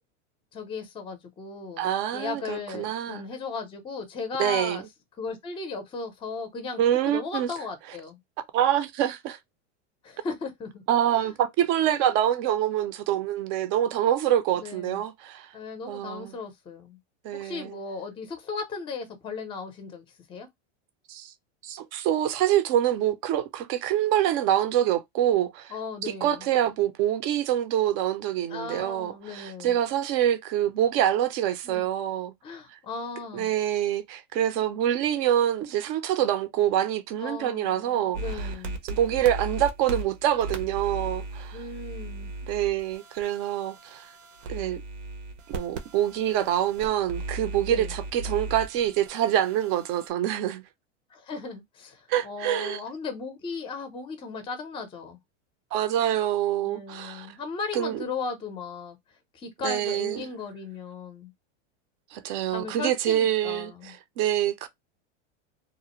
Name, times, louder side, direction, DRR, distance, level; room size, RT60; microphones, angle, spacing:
voice 1, 0.5-4.8 5.2-8.2 10.0-10.8 11.1-11.3 14.6-15.0 15.5-17.0 17.3-20.5 25.7-26.5 28.5-29.8 31.6-31.9 32.4-33.5 37.2-38.8 41.5-42.3 47.7-47.9 51.1-55.2 56.6-59.0 59.3-61.3 62.5-64.0, left 4 dB, 15° left, 0.5 m, -36 dB
voice 2, 1.8-3.2 4.4-4.8 6.8-7.5 8.5-9.4 10.9-15.5 15.9-16.3 17.2-17.8 21.1-21.3 21.6-25.7 26.0-32.3 32.7-32.8 33.3-38.5 38.8-41.6 42.5-44.1 44.5-44.8 45.5-50.6 52.1-52.8 55.7-57.3 57.7-58.0 59.6-60.3 62.1-64.7, right 11 dB, 45° right, 0.5 m, -26 dB
sound 1, 38.1-50.1, right 2 dB, 80° right, 0.8 m, -37 dB
2.5 x 2.0 x 2.9 m
supercardioid pair, 135°, 36 cm